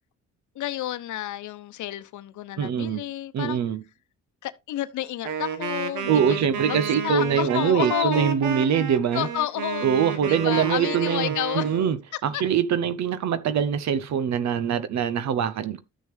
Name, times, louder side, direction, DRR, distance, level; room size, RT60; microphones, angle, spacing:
voice 1, 0.5-3.6 4.4-8.3 9.1-9.9 10.3-11.7 12.3-12.4, left 13 dB, 75° left, 0.8 m, -30 dB
voice 2, 2.6-3.0 3.3-3.8 6.1-9.3 9.8-12.0 12.2-15.8, right 8 dB, 65° right, 0.8 m, -23 dB
Wind instrument woodwind instrument, 5.2-11.9, right 7 dB, 80° right, 1.5 m, -31 dB
12.5 x 6.3 x 3.3 m
cardioid pair, 90°, 30 cm